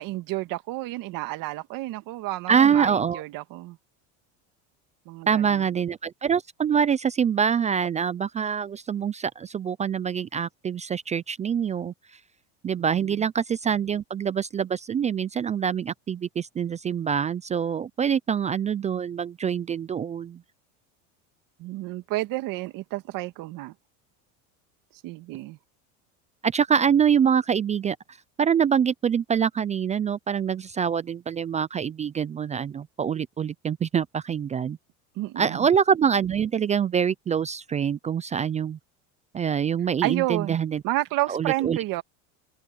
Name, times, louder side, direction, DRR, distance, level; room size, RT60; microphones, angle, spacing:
voice 1, 0.0-3.8 5.1-5.6 12.8-13.2 21.6-23.7 25.0-25.6 35.2-35.7 40.0-40.6 40.8-42.0, right 18 dB, 60° right, 2.1 m, -30 dB
voice 2, 2.5-3.2 5.3-11.9 12.6-20.4 26.4-28.0 28.4-34.8 35.4-38.8 39.3-40.8 41.3-41.8, right 7 dB, 20° right, 0.3 m, -25 dB
open air
supercardioid pair, 120°, 37 cm